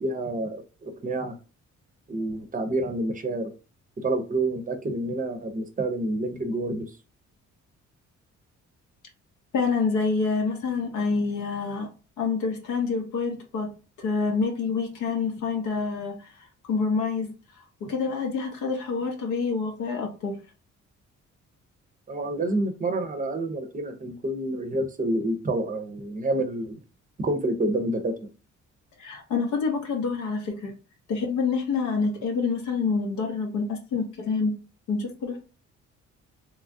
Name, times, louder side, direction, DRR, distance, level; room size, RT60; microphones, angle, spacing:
voice 1, 0.0-1.4 2.1-3.5 4.0-6.9 22.1-26.8 27.2-28.3, right 1 dB, 25° right, 0.6 m, -28 dB
voice 2, 9.5-11.9 12.2-13.7 14.0-16.3 16.7-17.3 17.8-20.4 29.0-30.7 31.1-34.5 34.9-35.4, left 4 dB, 75° left, 0.7 m, -27 dB
3.0 x 2.3 x 2.5 m
cardioid pair, 90°, 30 cm